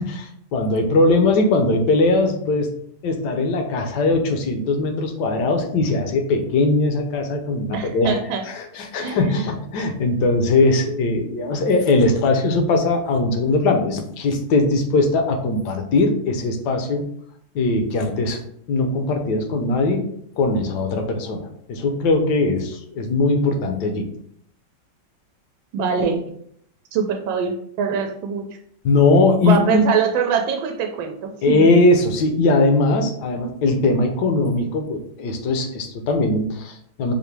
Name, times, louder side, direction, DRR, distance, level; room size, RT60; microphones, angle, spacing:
voice 1, 0.0-2.7 3.0-8.1 8.5-17.0 17.5-18.4 18.7-20.0 20.4-24.1 28.8-29.8 31.4-37.1, left 2 dB, 70° left, 4 dB, 1.2 m, -20 dB
voice 2, 7.7-8.4 9.0-9.4 25.7-26.3 26.9-28.4 29.4-31.8, right 6 dB, 90° right, 3 dB, 1.4 m, -23 dB
4.9 x 2.6 x 3.3 m, 0.67 s
omnidirectional pair, 2.1 m